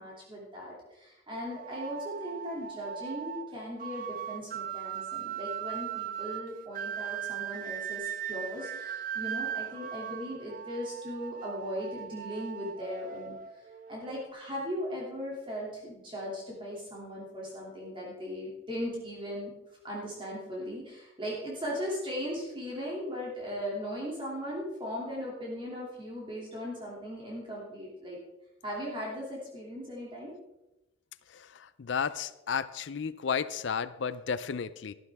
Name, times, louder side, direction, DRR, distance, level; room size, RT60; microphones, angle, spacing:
voice 1, 0.0-19.5 19.8-28.2 28.6-30.3, equal, 25° right, -4 dB, 2.7 m, -38 dB
sound 1, 1.5-14.3, right 9 dB, 45° right, 0.4 m, -39 dB
voice 2, 31.8-34.9, left 6 dB, 65° left, 15 dB, 0.5 m, -32 dB
13.5 x 12.5 x 3.5 m, 0.99 s
head